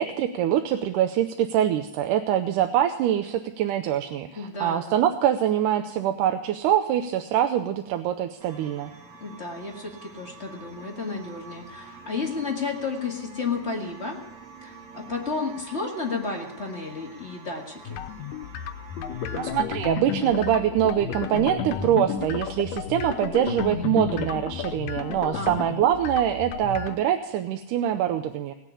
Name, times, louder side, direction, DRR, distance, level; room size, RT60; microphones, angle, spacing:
voice 1, 0.0-8.9 19.4-28.5, right 10 dB, 90° right, 7 dB, 2.3 m, -24 dB
voice 2, 4.3-5.0 9.2-14.2 14.6-18.0 25.3-25.7, left 4 dB, 25° left, -1 dB, 1.7 m, -32 dB
sound 1, 8.4-19.6, right 4 dB, 40° right, 1.7 m, -46 dB
sound 2, 17.9-27.0, left 9 dB, 85° left, 2.3 m, -36 dB
sound 3, 18.9-25.6, left 7 dB, 65° left, 2.2 m, -33 dB
18.5 x 7.3 x 8.4 m, 0.92 s
omnidirectional pair, 3.6 m